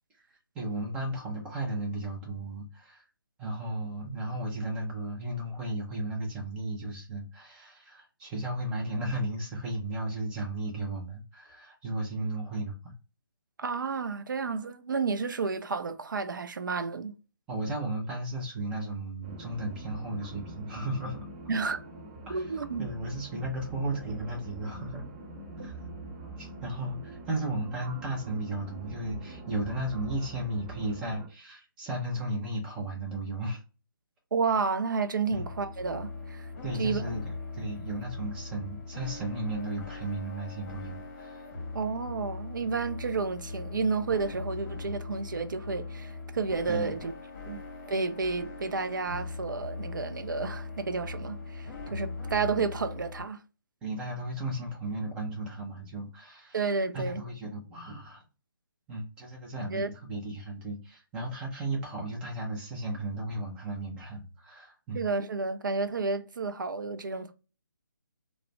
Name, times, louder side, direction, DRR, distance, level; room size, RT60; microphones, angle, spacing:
voice 1, 0.5-3.0 3.4-13.0 17.5-21.2 22.3-22.5 22.8-25.1 25.6-25.8 26.4-33.6 35.3-35.5 36.6-41.4 46.7-46.9 53.8-56.7 56.9-58.2 58.9-65.0, right 1 dB, 10° right, 0.5 m, -35 dB
voice 2, 13.6-17.1 21.5-21.8 22.3-22.9 34.3-36.5 36.8-37.0 41.7-47.1 47.5-47.6 47.9-53.4 56.5-57.2 59.6-59.9 64.9-67.3, right 4 dB, 65° right, 0.4 m, -31 dB
sound 1, 19.2-31.3, right 2 dB, 30° right, 0.9 m, -44 dB
sound 2, 35.3-53.2, left 3 dB, 35° left, 0.9 m, -40 dB
2.3 x 2.1 x 3.0 m
figure-of-eight pair, 150°, 11 cm